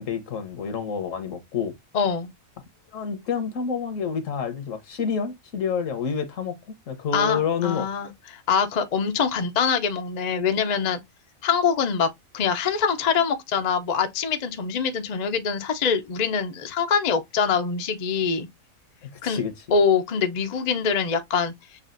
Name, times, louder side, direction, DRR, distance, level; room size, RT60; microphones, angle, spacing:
voice 1, 0.0-1.7 2.9-6.6 6.9-7.9 19.0-19.5, left 6 dB, 70° left, 1.2 m, -28 dB
voice 2, 1.9-2.3 7.1-11.0 11.4-12.1 12.3-18.5 19.2-19.4 19.7-21.5, left 6 dB, 50° left, 0.5 m, -24 dB
6.7 x 2.4 x 2.5 m
omnidirectional pair, 1.4 m